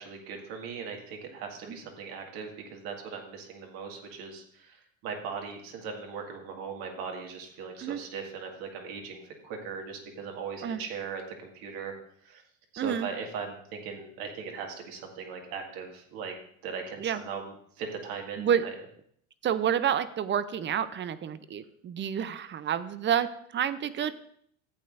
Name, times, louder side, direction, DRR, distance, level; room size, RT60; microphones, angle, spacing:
voice 1, 0.0-11.9 12.2-12.4 12.7-16.3 16.6-18.7, right 5 dB, 60° right, 2 dB, 2.1 m, -39 dB
voice 2, 12.8-13.1 17.0-17.2 18.4-18.7 19.4-24.1, right 9 dB, 30° right, 14 dB, 0.6 m, -29 dB
13.5 x 8.4 x 2.6 m, 0.66 s
hypercardioid pair, 80°, 40 cm